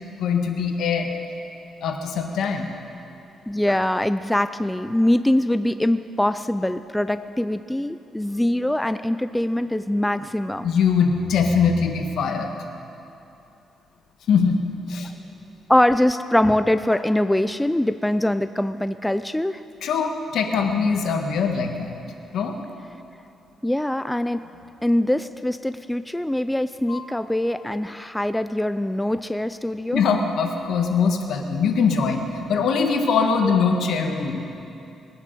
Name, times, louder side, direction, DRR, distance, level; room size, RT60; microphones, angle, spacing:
voice 1, 0.2-1.1 1.8-2.7 10.6-12.5 14.3-14.6 14.9-15.1 19.8-22.0 22.3-22.6 26.9-27.0 29.9-34.4, left 5 dB, 75° left, 4 dB, 1.6 m, -22 dB
voice 2, 3.5-10.6 15.7-19.6 23.6-24.4 24.8-30.0, left 1 dB, 5° left, 11 dB, 0.4 m, -23 dB
21.0 x 9.7 x 6.8 m, 2.8 s
cardioid pair, 120°, 0 cm